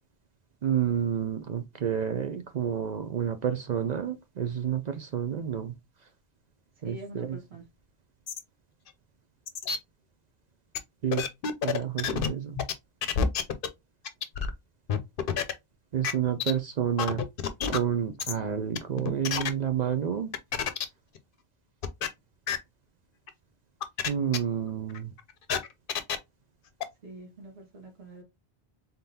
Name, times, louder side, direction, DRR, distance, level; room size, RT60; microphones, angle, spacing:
voice 1, 0.6-5.7 6.8-7.4 11.0-11.2 11.6-12.6 15.9-17.2 17.7-20.3 24.1-25.1, right 9 dB, 55° right, 0.5 m, -29 dB
voice 2, 6.8-7.6 27.0-28.2, equal, 75° right, 1.8 m, -45 dB
sound 1, 8.3-8.4 8.9-9.0 9.5-9.8 10.7-10.8 11.1-12.3 12.6-12.7 13.0-13.7 14.0-14.5 14.9-15.5 16.0-16.1 16.4-16.5 17.0-17.8 18.2-18.3 18.7-19.5 20.3-20.8 21.1-21.2 21.8-22.1 22.5-22.6 23.3-23.4 23.8-24.1 24.3-24.4 24.9-26.2 26.8-26.9, left 7 dB, 60° left, 0.8 m, -28 dB
3.9 x 3.7 x 2.7 m
omnidirectional pair, 1.1 m